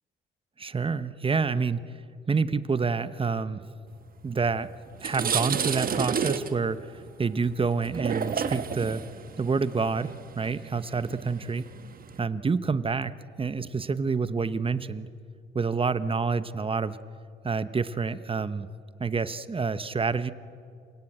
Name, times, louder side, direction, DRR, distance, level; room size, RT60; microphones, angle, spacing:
voice 1, 0.6-2.0 2.3-3.6 4.2-4.7 5.0-9.0 9.4-11.7 12.2-13.1 13.4-15.1 15.5-17.0 17.4-18.7 19.0-20.3, right 4 dB, 25° right, 14 dB, 0.9 m, -28 dB
open the window, 4.4-4.5 4.9-12.2, right 6 dB, 45° right, 1.3 m, -31 dB
28.0 x 17.0 x 8.9 m, 2.4 s
cardioid pair, 90°, 20 cm